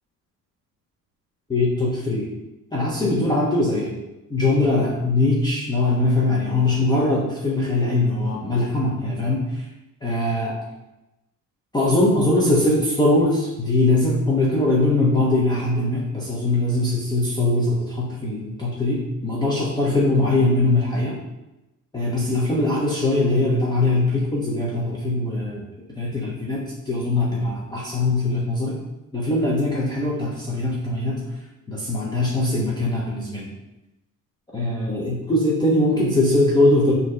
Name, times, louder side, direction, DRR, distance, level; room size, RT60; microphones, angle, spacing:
voice 1, 1.5-2.3 2.7-4.0 4.3-9.7 10.0-10.6 11.7-21.2 21.9-25.7 26.0-28.7 29.1-31.2 31.7-33.5 34.5-36.9, left 2 dB, 15° left, -6 dB, 0.5 m, -21 dB
6.1 x 2.7 x 3.1 m, 0.97 s
cardioid pair, 165°, 34 cm